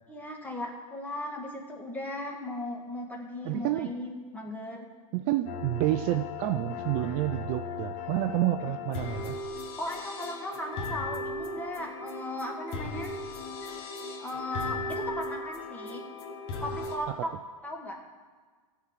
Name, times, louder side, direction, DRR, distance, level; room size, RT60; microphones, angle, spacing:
voice 1, 0.1-4.9 9.8-13.1 14.2-16.0 16.6-17.3 17.6-18.0, left 1 dB, 10° left, 1 dB, 1.8 m, -37 dB
voice 2, 3.4-3.9 5.1-9.4 17.1-17.2, right 15 dB, 40° right, 8 dB, 0.5 m, -29 dB
sound 1, 5.5-17.0, left 3 dB, 45° left, 1.4 m, -37 dB
14.0 x 4.7 x 7.5 m, 1.5 s
hypercardioid pair, 115°, 18 cm